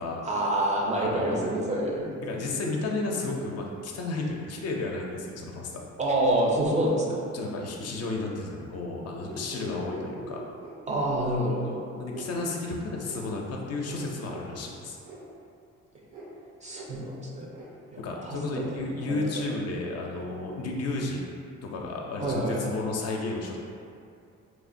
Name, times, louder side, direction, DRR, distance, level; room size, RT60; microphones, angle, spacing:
voice 1, 0.2-2.1 6.0-7.2 10.9-11.8 16.6-17.5 17.9-18.7 19.1-19.4 22.2-22.6, right 1 dB, 25° right, -3 dB, 0.4 m, -27 dB
voice 2, 0.9-1.4 2.2-5.9 7.3-10.5 11.9-15.0 18.0-21.3 21.6-23.6, left 2 dB, 55° left, 0 dB, 0.4 m, -32 dB
sound 1, 9.2-10.8 11.3-11.5 12.1-12.3 13.1-13.2 13.8-14.0 14.3-14.5 15.0-15.2 16.1-16.3 16.7-16.9 17.5-17.6, right 2 dB, 80° right, 0.7 m, -43 dB
3.0 x 2.1 x 2.5 m, 2.4 s
cardioid pair, 90°, 30 cm